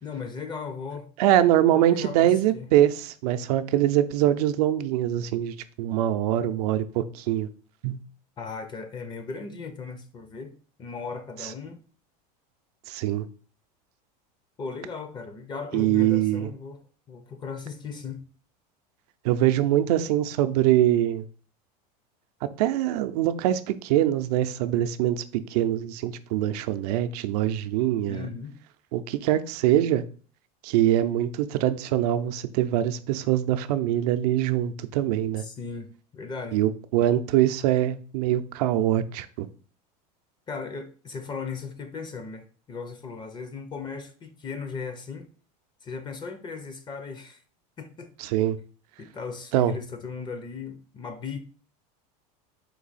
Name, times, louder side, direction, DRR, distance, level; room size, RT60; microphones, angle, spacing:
voice 1, 0.0-1.1 1.9-2.7 8.4-10.5 10.8-11.8 14.6-16.8 17.1-18.2 28.1-28.5 35.4-36.6 40.5-45.3 45.8-47.4 47.8-48.1 49.0-51.4, left 5 dB, 20° left, 0.5 m, -37 dB
voice 2, 1.2-7.5 7.8-8.0 11.4-11.5 12.9-13.3 15.7-16.5 19.2-21.2 22.4-28.3 28.9-30.0 30.6-35.4 36.5-39.5 48.2-48.6 49.5-49.7, right 12 dB, 75° right, 0.5 m, -23 dB
4.6 x 2.7 x 4.0 m
supercardioid pair, 130°, 20 cm